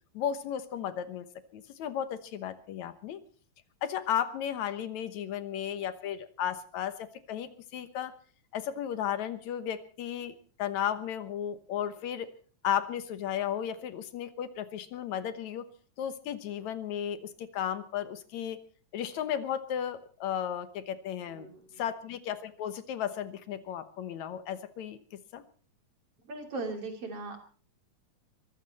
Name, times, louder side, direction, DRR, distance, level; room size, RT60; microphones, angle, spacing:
voice 1, 0.1-1.3 1.5-3.2 3.8-8.1 8.5-12.3 12.6-15.7 16.0-18.6 18.9-21.5 21.8-25.4, left 9 dB, 75° left, 12 dB, 2.4 m, -34 dB
voice 2, 21.3-21.8 26.3-27.4, right 3 dB, 50° right, 5 dB, 3.7 m, -38 dB
23.0 x 15.0 x 4.2 m, 0.41 s
omnidirectional pair, 3.4 m